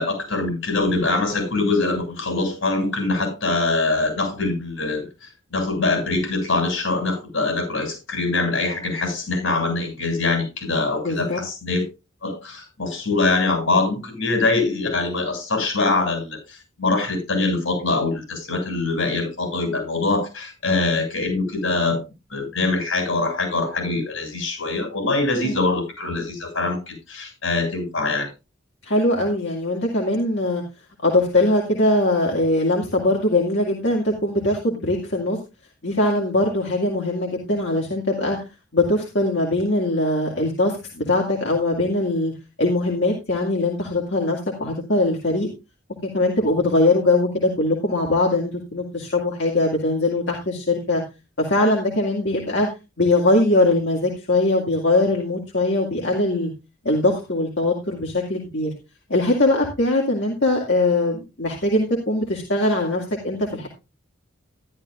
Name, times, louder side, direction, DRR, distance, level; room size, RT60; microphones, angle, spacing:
voice 1, 0.0-11.8 12.2-22.0 22.3-28.3, left 3 dB, 85° left, 4 dB, 7.7 m, -23 dB
voice 2, 11.0-11.4 25.4-25.6 28.8-30.6 31.0-35.4 35.8-38.4 38.7-42.3 42.6-45.5 46.1-51.0 51.4-52.7 53.0-56.5 56.8-58.7 59.1-63.7, left 2 dB, 65° left, -1 dB, 2.2 m, -21 dB
13.0 x 11.5 x 2.5 m, 0.27 s
head